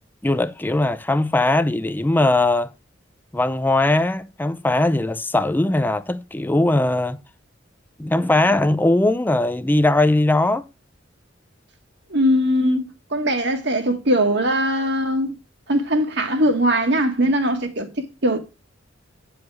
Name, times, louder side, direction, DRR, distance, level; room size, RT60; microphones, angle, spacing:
voice 1, 0.2-2.7 3.3-7.2 8.0-10.7, left 2 dB, 10° left, 0.4 m, -20 dB
voice 2, 12.1-15.3 15.7-18.4, equal, 65° right, 1.7 m, -20 dB
9.5 x 4.8 x 4.7 m
head